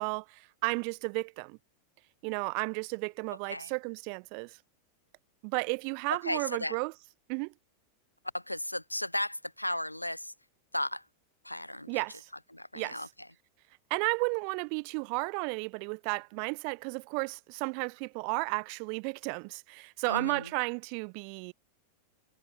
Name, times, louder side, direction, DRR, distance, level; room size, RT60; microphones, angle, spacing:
voice 1, 0.0-1.6 2.2-4.6 5.4-6.9 7.3-7.5 11.9-12.3 12.7-12.9 13.9-21.5, right 40 dB or more, 45° right, 1.6 m, -33 dB
voice 2, 6.1-6.8 8.3-10.3 10.7-11.1 11.4-12.0 12.5-13.3 20.1-20.5, left 1 dB, 85° left, 2.2 m, -35 dB
figure-of-eight pair, 90°, 0 cm